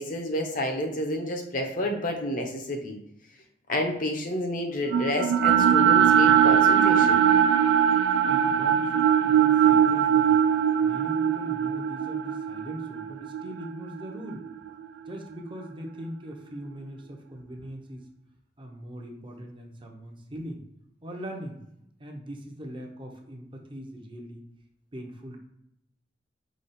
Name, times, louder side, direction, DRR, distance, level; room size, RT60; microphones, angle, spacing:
voice 1, 0.0-3.0 3.7-7.2, left 1 dB, 50° left, 2 dB, 0.8 m, -29 dB
sound 1, 4.9-15.1, right 8 dB, 85° right, 0.3 m, -21 dB
voice 2, 8.2-10.4 10.8-14.5 15.1-18.0 18.6-20.6 21.0-21.6 22.0-24.4 24.9-25.4, equal, 30° right, 2 dB, 0.7 m, -40 dB
5.0 x 2.3 x 4.1 m, 0.81 s
head